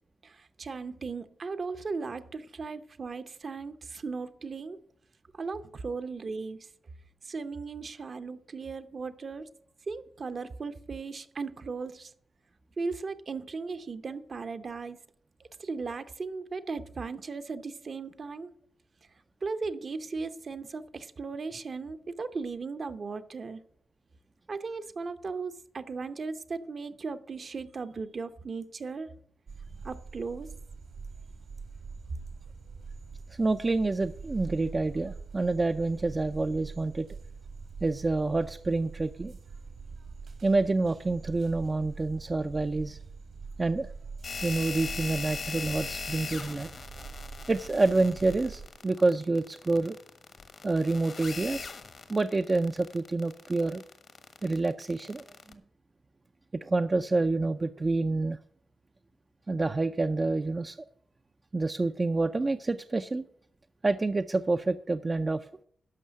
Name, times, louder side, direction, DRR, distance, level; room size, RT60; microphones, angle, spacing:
voice 1, 0.2-4.8 5.3-6.6 7.2-9.5 9.9-12.1 12.8-15.0 15.6-18.5 19.4-23.6 24.5-29.1 29.8-30.5, right 4 dB, 50° right, 0.8 m, -37 dB
sound 1, 29.5-48.7, right 4 dB, 75° right, 2.1 m, -44 dB
voice 2, 33.3-37.1 37.8-39.4 40.4-43.0 43.6-43.9 44.4-46.7 47.5-50.0 50.6-51.7 52.1-53.8 54.4-55.6 56.6-58.4 59.5-60.8 61.5-63.2 63.8-65.5, right 3 dB, 30° right, 0.5 m, -28 dB
sound 2, 44.2-55.5, left 4 dB, 60° left, 1.4 m, -40 dB
12.0 x 5.6 x 7.4 m
cardioid pair, 75°, 0 cm